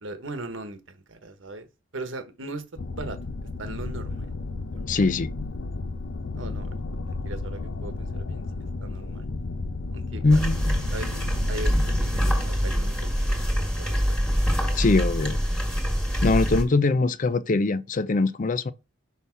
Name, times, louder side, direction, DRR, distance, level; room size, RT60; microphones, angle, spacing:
voice 1, 0.0-1.7 1.9-2.7 2.9-3.2 3.6-4.3 4.7-5.0 6.3-8.5 8.8-9.3 9.9-10.5 10.9-14.2, right 2 dB, 75° right, 1.3 m, -39 dB
sound 1, 2.8-14.8 16.0-16.2, left 3 dB, 75° left, 0.6 m, -34 dB
voice 2, 4.9-5.3 10.2-10.8 14.7-15.4 16.2-18.7, left 3 dB, 40° left, 0.5 m, -22 dB
sound 2, 10.3-16.6, equal, 5° left, 1.8 m, -25 dB
5.9 x 5.5 x 4.6 m
head